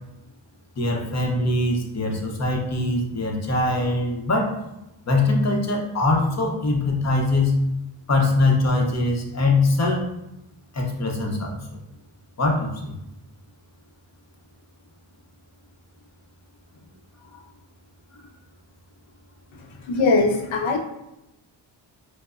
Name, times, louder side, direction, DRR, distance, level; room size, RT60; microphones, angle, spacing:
voice 1, 0.8-4.6 5.1-7.6 8.1-10.0 10.7-11.8 12.4-13.0 17.3-17.4, left 2 dB, 35° left, 0 dB, 0.8 m, -22 dB
voice 2, 19.7-20.8, left 3 dB, 90° left, 2 dB, 0.6 m, -21 dB
4.4 x 2.1 x 2.4 m, 0.89 s
cardioid pair, 65°, 45 cm